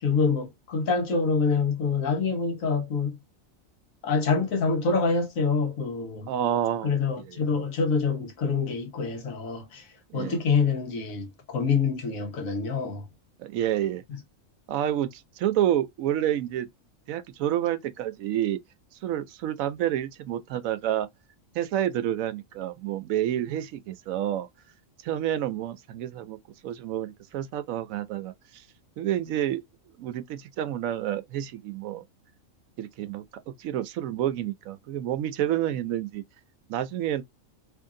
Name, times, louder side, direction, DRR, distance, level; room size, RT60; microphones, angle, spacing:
voice 1, 0.0-3.2 4.0-6.3 6.8-9.9 10.1-13.0, left 4 dB, 80° left, 1.4 m, -26 dB
voice 2, 6.3-7.4 10.1-10.4 13.4-14.0 14.7-16.7 17.1-18.6 19.0-21.1 21.5-24.5 25.0-26.4 26.6-28.6 29.0-29.6 30.0-32.0 32.8-36.2 36.7-37.2, right 11 dB, 85° right, 1.0 m, -29 dB
3.1 x 2.6 x 3.6 m
omnidirectional pair, 1.4 m